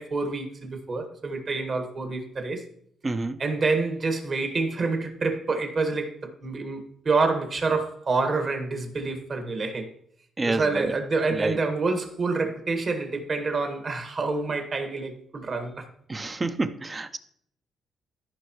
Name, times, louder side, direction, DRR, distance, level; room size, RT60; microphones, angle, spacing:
voice 1, 0.0-2.6 3.4-9.9 10.5-15.9, right 3 dB, 45° right, 1.9 m, -27 dB
voice 2, 3.0-3.4 10.4-10.9 11.4-11.5 16.1-17.2, right 2 dB, 25° right, 0.6 m, -28 dB
14.0 x 5.5 x 3.1 m
cardioid pair, 90°, 0 cm